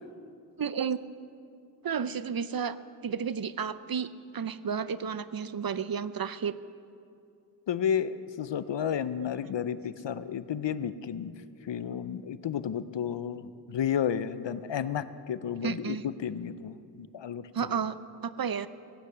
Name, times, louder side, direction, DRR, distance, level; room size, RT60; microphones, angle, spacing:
voice 1, 0.6-1.0 1.8-2.8 3.0-4.1 4.3-6.6 15.6-16.0 17.5-18.0 18.2-18.7, right 7 dB, 55° right, 15 dB, 0.6 m, -31 dB
voice 2, 7.7-11.3 11.7-17.8, left 8 dB, 85° left, 14 dB, 0.6 m, -32 dB
16.0 x 9.7 x 6.7 m, 2.5 s
wide cardioid pair, 45°, 42 cm